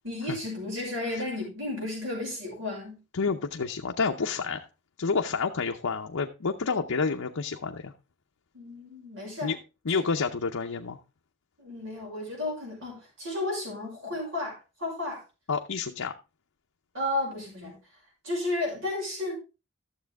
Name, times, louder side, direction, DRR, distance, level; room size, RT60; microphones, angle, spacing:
voice 1, 0.0-3.0 8.5-9.6 9.9-10.0 11.6-15.2 16.9-17.7 18.2-19.4, left 2 dB, 65° right, 6.0 m, -33 dB
voice 2, 3.1-4.7 5.0-7.9 9.4-9.6 9.9-11.0 15.5-16.1, left 5 dB, 80° left, 0.7 m, -29 dB
12.5 x 7.3 x 3.5 m
head